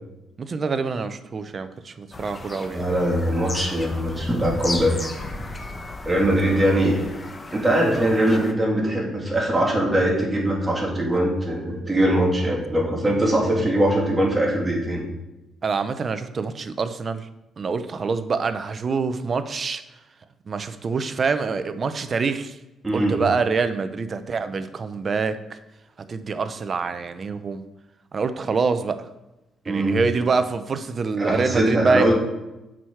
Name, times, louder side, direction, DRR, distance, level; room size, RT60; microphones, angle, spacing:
voice 1, 0.4-2.8 15.6-17.3 17.6-19.8 20.5-22.6 22.9-25.6 26.0-27.6 28.1-29.1 29.7-32.1, right 4 dB, 40° right, 11 dB, 0.7 m, -25 dB
Bird vocalization bird call bird song, 2.1-8.5, left 2 dB, 25° left, 1.0 m, -35 dB
voice 2, 2.7-5.0 6.0-7.0 7.5-15.0 22.8-23.2 29.7-30.0 31.2-32.1, right 1 dB, 15° right, -2 dB, 2.7 m, -21 dB
7.8 x 6.3 x 4.6 m, 0.98 s
cardioid pair, 90°, 0 cm